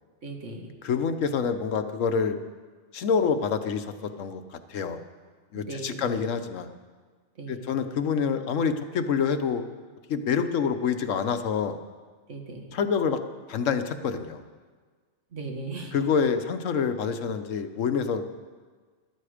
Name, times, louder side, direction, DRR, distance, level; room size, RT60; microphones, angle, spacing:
voice 1, 0.2-0.7 5.5-6.3 7.4-8.0 12.3-12.7 15.3-16.0, right 2 dB, 70° right, 2 dB, 2.0 m, -38 dB
voice 2, 0.8-2.4 2.9-5.0 5.5-6.7 7.5-9.7 10.1-11.8 12.7-13.2 13.5-14.4 15.9-18.2, left 6 dB, 85° left, 9 dB, 1.2 m, -27 dB
13.5 x 12.5 x 5.0 m, 1.5 s
omnidirectional pair, 1.3 m